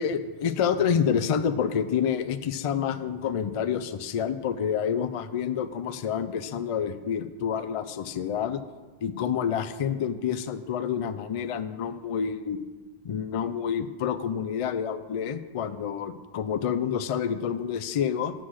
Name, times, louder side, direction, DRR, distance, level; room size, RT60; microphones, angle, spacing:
voice 1, 0.0-8.6 9.0-12.6 13.0-18.3, left 8 dB, 60° left, 10 dB, 0.3 m, -28 dB
7.6 x 6.2 x 6.3 m, 1.3 s
omnidirectional pair, 1.1 m